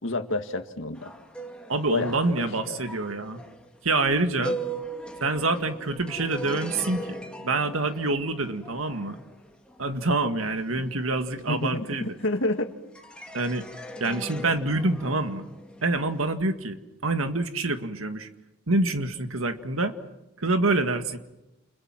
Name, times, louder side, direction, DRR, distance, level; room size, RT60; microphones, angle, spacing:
voice 1, 0.0-1.1 1.9-2.8 11.5-12.7, left 2 dB, 65° left, 7 dB, 2.0 m, -29 dB
sound 1, 0.9-12.5 12.9-16.3, right 2 dB, 5° left, 2.3 m, -40 dB
voice 2, 1.7-3.4 3.8-4.6 5.2-9.2 9.8-12.2 13.3-13.7 14.0-15.5 15.8-18.3 18.7-20.0 20.4-21.2, right 2 dB, 85° right, 8 dB, 1.9 m, -26 dB
30.0 x 29.5 x 6.0 m, 0.97 s
head